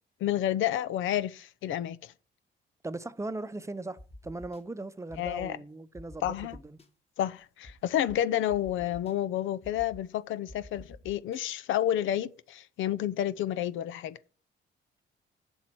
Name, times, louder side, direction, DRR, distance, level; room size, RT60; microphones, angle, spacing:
voice 1, 0.2-2.1 5.2-5.6 6.2-6.6 7.2-14.2, left 11 dB, 80° left, 0.7 m, -30 dB
voice 2, 2.8-6.8, right 2 dB, 15° right, 0.7 m, -39 dB
sound 1, 4.0-4.6 5.1-5.5 5.9-6.9 7.6-7.7 8.1-8.2 8.5-9.1 9.6-10.0 10.5-11.4, left 1 dB, 30° left, 1.8 m, -48 dB
7.5 x 7.2 x 6.0 m
cardioid pair, 90°, 20 cm